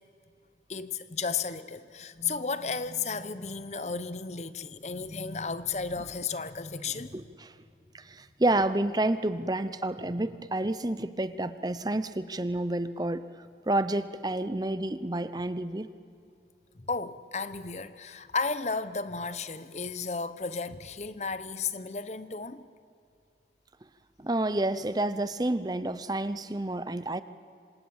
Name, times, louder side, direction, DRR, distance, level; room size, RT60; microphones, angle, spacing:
voice 1, 0.7-7.2 16.8-22.7, left 4 dB, 40° left, 0.9 m, -34 dB
voice 2, 7.1-7.5 7.9-13.3 13.7-15.9 24.2-27.2, right 1 dB, 20° right, 0.7 m, -29 dB
27.0 x 26.5 x 7.3 m
head